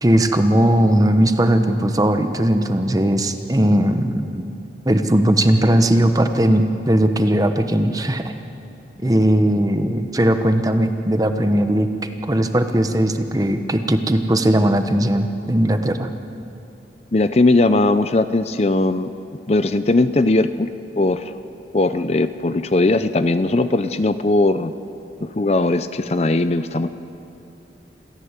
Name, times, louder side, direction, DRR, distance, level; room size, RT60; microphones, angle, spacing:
voice 1, 0.0-4.4 4.8-8.3 9.0-16.1, right 1 dB, 20° right, 7 dB, 1.1 m, -18 dB
voice 2, 17.1-19.1 19.5-20.7 21.0-21.3 21.7-24.7 25.2-26.9, left 2 dB, 35° left, 11 dB, 0.6 m, -19 dB
27.5 x 14.5 x 8.2 m, 2.7 s
head